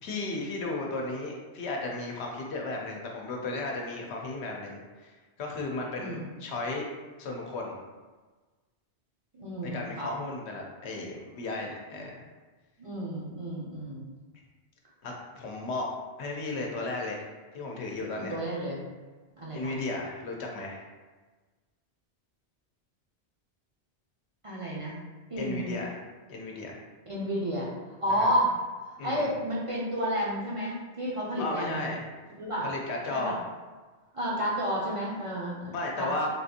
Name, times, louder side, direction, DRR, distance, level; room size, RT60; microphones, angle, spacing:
voice 1, 0.0-6.9 7.2-7.8 9.6-12.2 15.0-15.9 16.2-17.3 17.5-18.3 19.5-20.8 25.4-26.0 26.3-26.8 28.1-28.3 29.0-29.3 31.4-32.0 32.6-33.4 35.7-36.3, left 2 dB, 75° left, 0 dB, 0.9 m, -34 dB
voice 2, 9.3-10.1 12.8-14.1 18.1-18.8 19.4-19.7 24.4-25.0 25.3-25.7 27.1-27.7 28.0-28.5 28.9-31.9 32.4-32.7 33.1-33.3 34.1-36.3, equal, 45° right, -5 dB, 0.4 m, -31 dB
3.5 x 2.5 x 2.7 m, 1.3 s
omnidirectional pair, 1.1 m